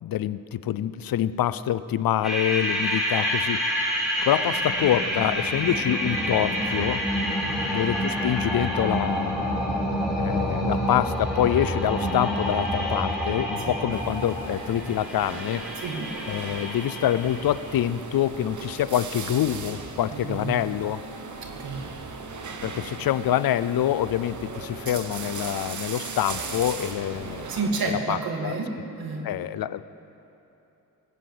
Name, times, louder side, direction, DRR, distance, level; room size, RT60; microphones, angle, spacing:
voice 1, 0.0-3.7 4.2-7.0 7.7-9.3 10.1-15.6 16.3-21.0 22.6-27.5 27.9-28.6 29.2-29.8, left 11 dB, 80° left, 16 dB, 0.5 m, -26 dB
sound 1, 2.2-17.5, equal, ahead, 4.5 m, -28 dB
voice 2, 7.4-7.7 13.7-13.8 15.8-16.1 20.1-20.6 21.6-21.9 27.5-29.3, right 3 dB, 85° right, 2 dB, 2.0 m, -30 dB
sound 2, 13.9-27.7, right 4 dB, 55° right, 1.3 m, -37 dB
19.0 x 9.2 x 7.7 m, 3.0 s
cardioid pair, 80°, 35 cm